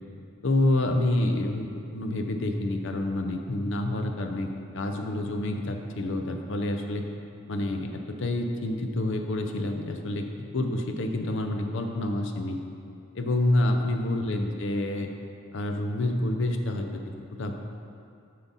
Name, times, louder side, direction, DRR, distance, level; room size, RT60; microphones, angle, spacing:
voice 1, 0.4-7.0 7.5-10.3 10.5-12.6 13.1-15.1 15.5-16.9 17.4-17.5, left 1 dB, 60° left, 5 dB, 0.6 m, -28 dB
7.1 x 5.6 x 4.1 m, 2.5 s
head